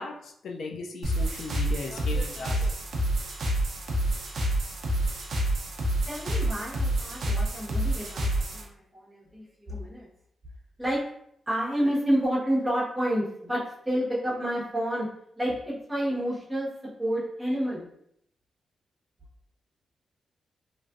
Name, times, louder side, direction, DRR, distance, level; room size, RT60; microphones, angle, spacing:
voice 1, 0.0-2.7, left 3 dB, 70° left, 1 dB, 0.3 m, -37 dB
sound 1, 1.0-8.6, right 1 dB, 60° right, 0.5 m, -28 dB
voice 2, 6.1-10.1 10.8-11.0 11.5-13.6 13.8-15.1 15.4-16.7 17.0-17.8, equal, 10° right, -8 dB, 1.1 m, -29 dB
3.2 x 2.4 x 2.4 m, 0.72 s
wide cardioid pair, 165°, 0 cm